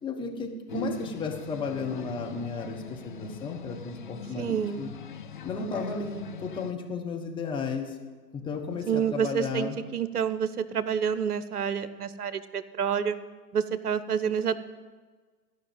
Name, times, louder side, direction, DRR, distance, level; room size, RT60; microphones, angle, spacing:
voice 1, 0.0-4.9 5.4-8.0 8.3-9.8, left 4 dB, 10° left, 1 dB, 1.2 m, -33 dB
sound 1, 0.7-6.7, left 8 dB, 35° left, 0.4 m, -42 dB
voice 2, 4.4-4.9 8.9-13.2 13.5-14.6, right 7 dB, 65° right, 14 dB, 1.0 m, -28 dB
14.0 x 5.8 x 8.9 m, 1.4 s
figure-of-eight pair, 115°, 50 cm